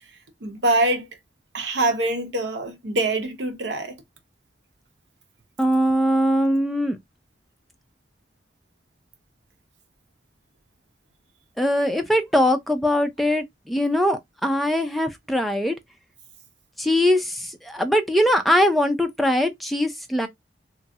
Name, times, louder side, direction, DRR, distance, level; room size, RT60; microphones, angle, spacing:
voice 1, 0.4-1.1 1.5-4.0, right 2 dB, 85° right, 0.9 m, -24 dB
voice 2, 5.6-7.0 11.6-15.8 16.8-20.3, equal, ahead, 0.4 m, -21 dB
3.0 x 2.4 x 2.7 m
head